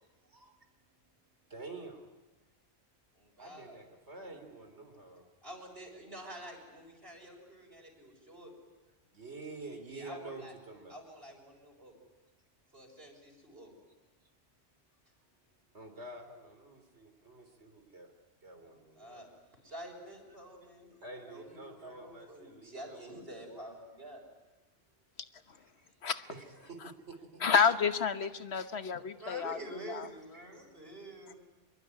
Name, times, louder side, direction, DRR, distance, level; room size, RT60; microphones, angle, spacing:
voice 1, 0.2-2.1 3.4-5.3 9.1-11.0 15.7-18.1 18.4-19.2 20.9-23.2 23.5-23.7 25.8-27.4 30.3-30.6, right 2 dB, 85° right, 5 dB, 3.8 m, -49 dB
voice 2, 3.1-3.8 5.4-8.5 9.9-10.5 10.9-11.9 12.7-13.7 18.7-19.3 19.6-21.0 21.3-24.2 28.9-31.4, right 1 dB, 65° right, 1 dB, 6.8 m, -48 dB
voice 3, 27.4-30.1, left 6 dB, 75° left, 10 dB, 1.4 m, -30 dB
25.5 x 22.5 x 9.8 m, 1.2 s
omnidirectional pair, 1.1 m